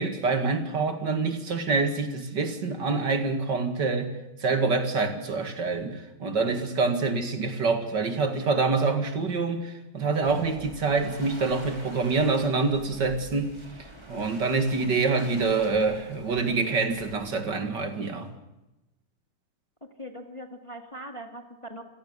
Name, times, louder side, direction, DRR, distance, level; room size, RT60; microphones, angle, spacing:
voice 1, 0.0-4.1 4.4-13.5 13.8-18.3, right 4 dB, 60° right, 7 dB, 2.7 m, -26 dB
sound 1, 10.2-17.2, right 1 dB, 10° right, 4.1 m, -45 dB
voice 2, 19.8-21.8, equal, 15° left, 5 dB, 1.9 m, -41 dB
27.5 x 17.5 x 6.8 m, 1.0 s
omnidirectional pair, 2.2 m